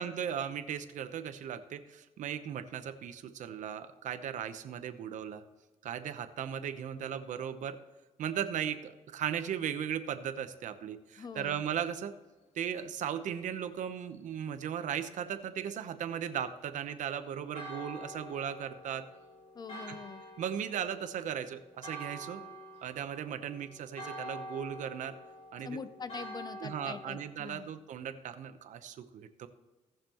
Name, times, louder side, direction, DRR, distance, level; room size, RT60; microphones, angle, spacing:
voice 1, 0.0-5.4 5.8-7.8 8.2-12.1 12.5-19.0 19.9-20.0 20.4-22.4 22.8-25.1 25.5-25.8 26.6-29.5, right 9 dB, 70° right, 10 dB, 0.9 m, -37 dB
voice 2, 11.2-11.7 19.5-20.2 25.6-27.7, left 5 dB, 30° left, 13 dB, 0.5 m, -43 dB
Church bell, 17.5-27.2, equal, 55° left, 3.5 m, -47 dB
18.0 x 6.8 x 3.0 m, 1.2 s
cardioid pair, 130°, 13 cm